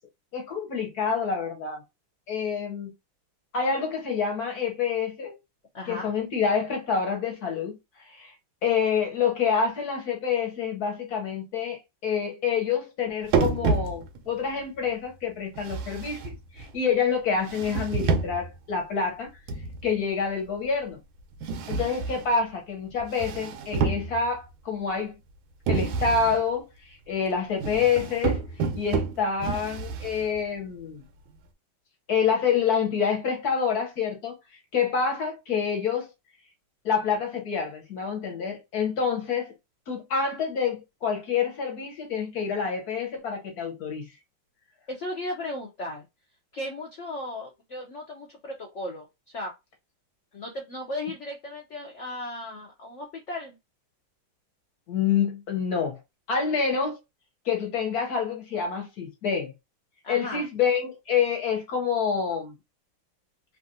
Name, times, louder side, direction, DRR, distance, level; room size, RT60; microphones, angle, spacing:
voice 1, 0.3-1.8 2.3-2.9 3.5-5.3 5.9-8.3 8.6-19.3 19.8-21.0 21.7-25.1 25.7-31.0 32.1-34.4 34.7-36.1 36.8-39.5 39.9-44.1 54.9-56.0 56.3-57.0 57.4-59.5 60.1-62.5, left 6 dB, 60° left, 1.2 m, -27 dB
voice 2, 5.7-6.1 21.5-21.9 44.9-46.0 46.5-49.5 50.3-53.6 60.0-60.4, left 1 dB, 80° left, 0.6 m, -36 dB
sound 1, 13.3-14.4 15.6-16.7 17.4-18.6 19.5-19.9 21.4-22.3 23.0-24.5 25.7-26.4 27.6-30.4, right 5 dB, 90° right, 1.5 m, -29 dB
3.3 x 2.4 x 2.6 m
omnidirectional pair, 2.2 m